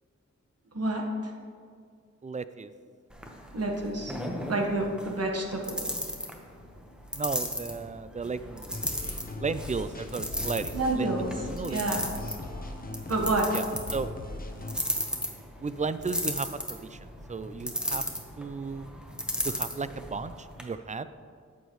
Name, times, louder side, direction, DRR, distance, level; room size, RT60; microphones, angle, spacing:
voice 1, 0.7-1.0 3.5-4.2 4.5-5.8 10.7-11.3 11.7-12.1 13.1-13.5, right 2 dB, 55° right, 1 dB, 1.4 m, -28 dB
voice 2, 2.2-2.7 7.1-8.8 9.4-11.1 11.4-11.8 13.5-13.6 13.9-14.1 15.6-18.0 18.4-18.9 19.4-21.1, right 4 dB, 25° right, 13 dB, 0.3 m, -34 dB
sound 1, 3.1-20.6, equal, 5° right, 1.1 m, -36 dB
sound 2, 8.7-14.8, left 2 dB, 30° left, 0.9 m, -39 dB
11.5 x 8.4 x 3.1 m, 2.2 s
wide cardioid pair, 80°, 29 cm